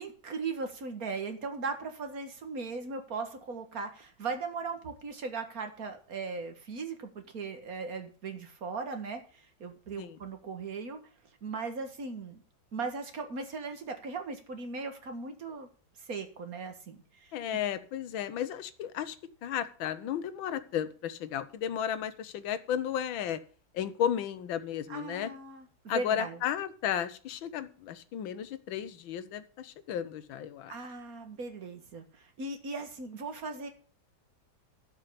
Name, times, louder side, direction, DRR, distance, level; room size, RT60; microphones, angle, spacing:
voice 1, 0.0-11.0 11.4-12.4 12.7-15.7 16.0-17.3 24.9-26.4 30.7-33.7, right 4 dB, 45° right, 6 dB, 2.0 m, -38 dB
voice 2, 17.3-19.1 19.4-23.4 23.7-25.3 25.9-30.7, left 9 dB, 75° left, 12 dB, 1.7 m, -33 dB
12.0 x 5.6 x 8.2 m, 0.41 s
omnidirectional pair, 2.2 m